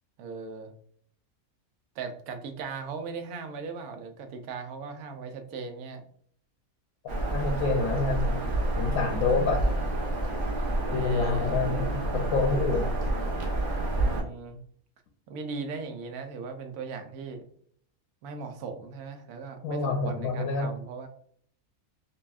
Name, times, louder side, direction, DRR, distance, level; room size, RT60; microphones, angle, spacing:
voice 1, 0.2-0.7 2.0-6.0 10.6-11.6 13.9-14.6 15.3-17.4 18.2-21.1, right 5 dB, 90° right, 6 dB, 1.1 m, -38 dB
Bird vocalization bird call bird song, 7.1-14.2, right 1 dB, 45° right, 0.9 m, -29 dB
voice 2, 7.3-8.4 8.8-9.6 10.9-12.9 19.6-20.7, left 3 dB, 80° left, 1 dB, 1.1 m, -27 dB
5.4 x 2.3 x 2.3 m, 0.62 s
omnidirectional pair, 1.5 m